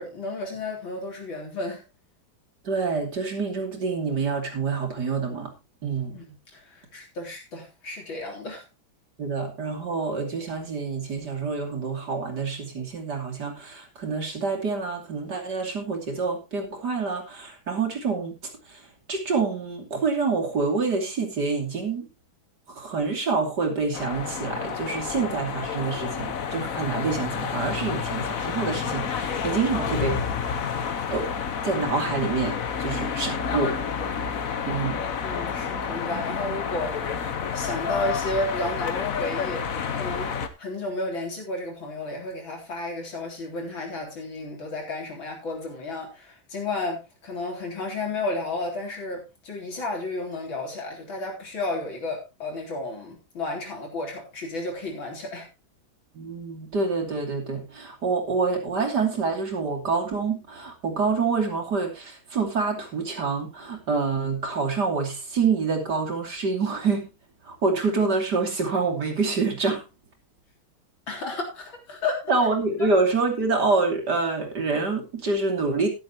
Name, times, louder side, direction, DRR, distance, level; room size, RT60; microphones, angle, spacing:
voice 1, 0.0-1.8 6.1-8.6 35.2-36.9 37.5-40.3 40.6-55.5 71.1-72.2 72.8-72.9, left 2 dB, 75° left, 4.4 m, -32 dB
voice 2, 2.7-5.5 5.8-6.2 9.2-18.3 19.1-22.1 22.8-30.2 31.1-31.3 31.6-33.8 34.6-35.0 56.1-67.1 67.5-69.8 72.3-75.9, right 4 dB, 55° right, 3.4 m, -27 dB
sound 1, 23.9-40.5, left 6 dB, 50° left, 1.3 m, -29 dB
13.0 x 11.5 x 3.0 m
omnidirectional pair, 2.2 m